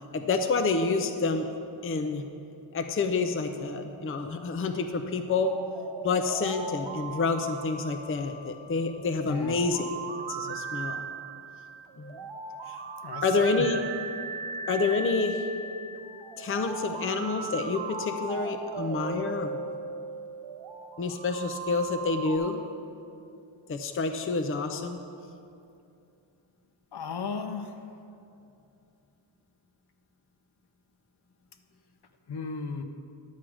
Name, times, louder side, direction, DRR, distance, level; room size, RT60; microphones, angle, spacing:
voice 1, 0.1-1.5 1.8-2.3 2.7-5.5 6.0-9.9 10.3-11.0 12.0-12.2 12.7-12.8 13.2-13.8 14.7-15.5 16.4-19.6 21.0-22.6 23.7-25.0, left 4 dB, 30° left, 5 dB, 0.5 m, -28 dB
sound 1, 5.2-22.4, right 4 dB, 75° right, 0.9 m, -38 dB
voice 2, 9.2-9.6 13.0-13.2 26.9-27.8 32.3-32.8, left 5 dB, 60° left, 7 dB, 0.8 m, -35 dB
10.0 x 7.4 x 4.8 m, 2.6 s
wide cardioid pair, 105°, 44 cm